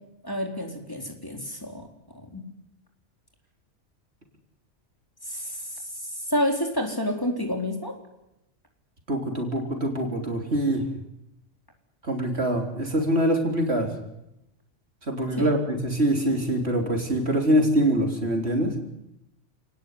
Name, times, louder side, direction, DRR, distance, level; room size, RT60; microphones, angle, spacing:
voice 1, 0.2-1.9 2.3-2.4 5.2-8.0 15.4-15.5, left 1 dB, 15° left, 2 dB, 3.9 m, -29 dB
voice 2, 9.1-10.9 12.0-13.9 15.1-18.8, right 1 dB, 60° right, 3 dB, 4.1 m, -24 dB
29.0 x 18.5 x 9.7 m, 0.87 s
omnidirectional pair, 1.3 m